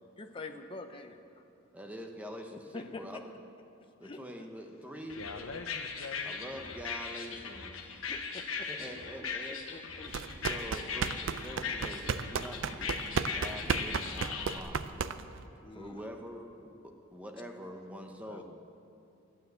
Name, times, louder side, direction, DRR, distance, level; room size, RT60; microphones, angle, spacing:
voice 1, 0.2-1.4 2.7-3.2 4.0-4.2 8.1-8.7 9.2-9.3 9.7-10.1 12.5-12.9 15.6-16.0, left 2 dB, 25° left, 5 dB, 0.7 m, -45 dB
voice 2, 1.7-3.3 4.0-5.5 6.2-8.1 8.7-9.8 10.5-14.8 15.7-18.4, equal, 5° right, 3 dB, 0.8 m, -45 dB
voice 3, 5.1-6.4 18.2-18.4, left 4 dB, 85° left, 8 dB, 0.8 m, -44 dB
sound 1, 5.1-14.6, left 5 dB, 70° left, 1.2 m, -39 dB
sound 2, 10.1-15.4, right 5 dB, 60° right, 0.5 m, -34 dB
12.0 x 9.3 x 8.0 m, 2.7 s
head